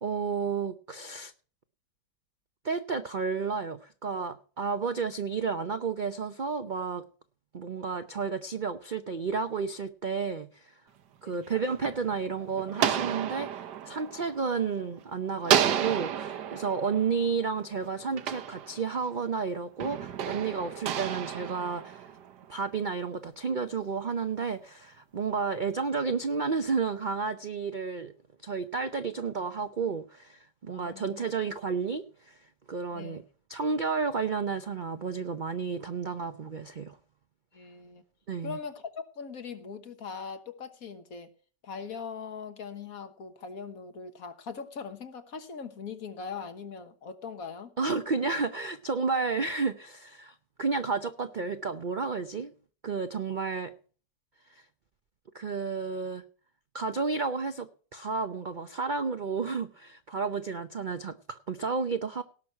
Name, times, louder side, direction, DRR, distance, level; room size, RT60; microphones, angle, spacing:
voice 1, 0.0-1.3 2.6-7.0 7.5-10.8 11.2-22.1 22.5-28.1 28.4-32.4 32.7-33.2 33.5-37.0 38.3-38.6 47.8-52.5 52.8-53.7 54.5-54.6 55.3-56.2 56.7-62.2, right 5 dB, 55° right, 0.5 m, -31 dB
sound 1, 11.3-15.0 15.4-19.2 19.8-22.5, right 9 dB, 75° right, 1.5 m, -32 dB
voice 2, 30.7-31.2 32.9-33.2 37.5-38.0 38.4-41.3 41.6-47.7, left 5 dB, 55° left, 1.6 m, -41 dB
18.0 x 6.2 x 5.7 m
omnidirectional pair, 1.8 m